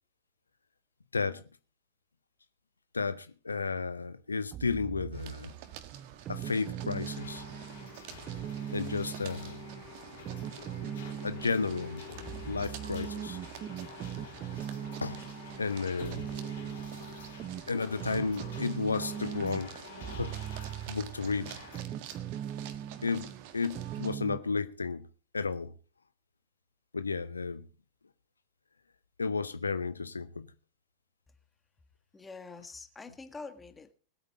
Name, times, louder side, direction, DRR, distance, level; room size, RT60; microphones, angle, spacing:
voice 1, 1.1-1.4 2.9-5.5 6.3-7.5 8.7-9.6 11.2-12.1 12.5-13.4 15.0-15.2 15.6-16.2 17.7-19.8 20.1-21.6 23.0-25.1 25.3-25.7 26.9-27.7 29.2-30.5, left 4 dB, 75° left, 0.7 m, -33 dB
sound 1, 4.5-24.4, right 10 dB, 30° right, 0.5 m, -41 dB
sound 2, 5.1-24.1, right 11 dB, 50° right, 1.6 m, -49 dB
sound 3, 7.0-21.8, left 7 dB, 60° left, 3.6 m, -49 dB
voice 2, 32.1-33.9, left 4 dB, 15° left, 1.6 m, -45 dB
20.5 x 8.9 x 4.2 m
figure-of-eight pair, 90°, 0 cm